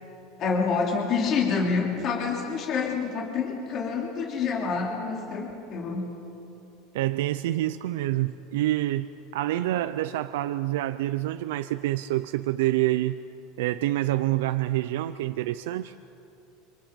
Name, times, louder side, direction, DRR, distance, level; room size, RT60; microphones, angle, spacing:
voice 1, 0.4-6.1, left 5 dB, 40° left, -1 dB, 3.1 m, -27 dB
voice 2, 6.9-13.2 13.6-15.9, right 15 dB, 85° right, 11 dB, 0.6 m, -27 dB
26.5 x 25.5 x 5.3 m, 2.9 s
supercardioid pair, 140°, 0 cm